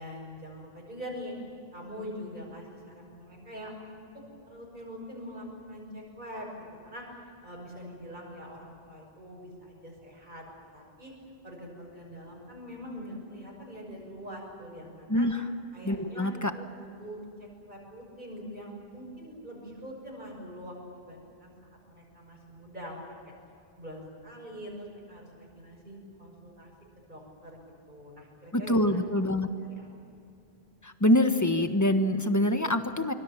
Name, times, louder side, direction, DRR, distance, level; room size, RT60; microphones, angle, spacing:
voice 1, 0.0-1.3 1.7-4.0 4.5-6.5 6.8-7.1 7.4-10.4 10.7-11.1 11.4-15.3 15.7-21.5 21.9-23.3 23.8-26.7 27.0-27.6 27.9-29.0 29.6-29.9, equal, 50° right, -2 dB, 6.4 m, -44 dB
voice 2, 15.8-16.5 28.5-29.5 30.8-33.1, left 1 dB, 15° left, 7 dB, 1.4 m, -25 dB
25.0 x 25.0 x 7.5 m, 2.6 s
omnidirectional pair, 1.1 m